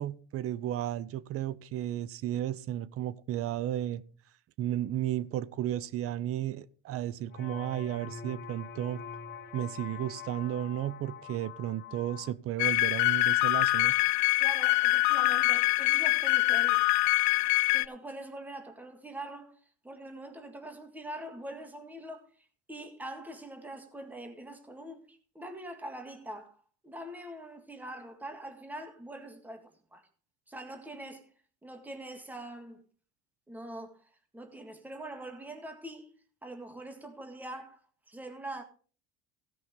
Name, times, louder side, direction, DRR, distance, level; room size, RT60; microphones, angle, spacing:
voice 1, 0.0-4.0 4.6-9.0 9.5-13.9, right 12 dB, 50° right, 0.7 m, -33 dB
sound 1, 7.3-12.3, left 7 dB, 35° left, 1.8 m, -44 dB
sound 2, 12.6-17.9, left 24 dB, 70° left, 0.5 m, -24 dB
voice 2, 14.4-16.8 17.7-19.6 19.8-22.2 22.7-30.0 30.5-31.3 31.6-32.8 33.5-34.0 34.3-36.1 36.4-37.8 38.1-38.6, right 1 dB, 5° right, 1.7 m, -43 dB
16.0 x 5.6 x 5.2 m
supercardioid pair, 110°, 29 cm